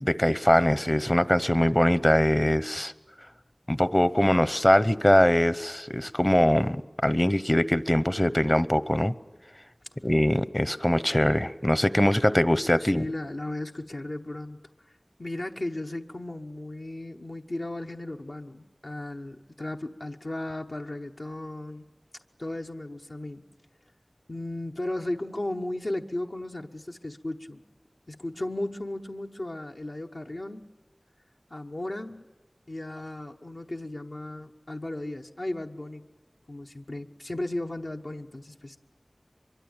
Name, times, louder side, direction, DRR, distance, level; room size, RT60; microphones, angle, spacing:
voice 1, 0.0-2.9 3.7-9.1 10.0-13.1, left 1 dB, 25° left, 16 dB, 0.8 m, -22 dB
voice 2, 12.8-14.6 14.9-21.8 22.4-23.4 24.3-27.6 28.1-30.6 31.5-32.2 32.7-36.0 36.5-38.8, left 1 dB, 70° left, 2 dB, 1.0 m, -35 dB
24.0 x 23.0 x 8.9 m, 1.1 s
wide cardioid pair, 45°, 0 cm